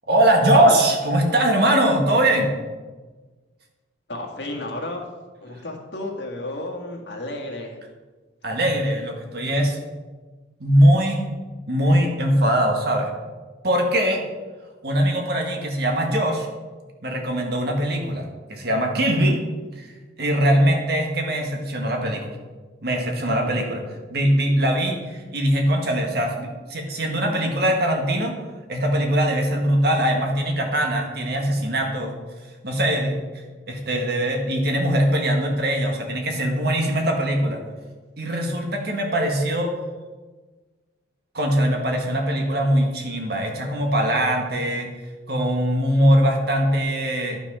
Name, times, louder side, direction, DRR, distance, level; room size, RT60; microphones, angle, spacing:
voice 1, 0.1-2.5 8.4-9.8 10.6-11.3 11.7-13.1 13.6-14.2 14.8-16.5 17.0-19.4 19.8-19.9 20.2-22.3 22.8-28.4 28.7-32.2 32.6-37.6 38.2-39.7 41.3-44.9 45.3-47.4, right 1 dB, 55° right, 2 dB, 1.7 m, -21 dB
voice 2, 4.1-5.1 5.4-7.8 23.4-23.5, left 1 dB, 70° left, 1 dB, 1.8 m, -32 dB
11.0 x 5.8 x 5.5 m, 1.3 s
head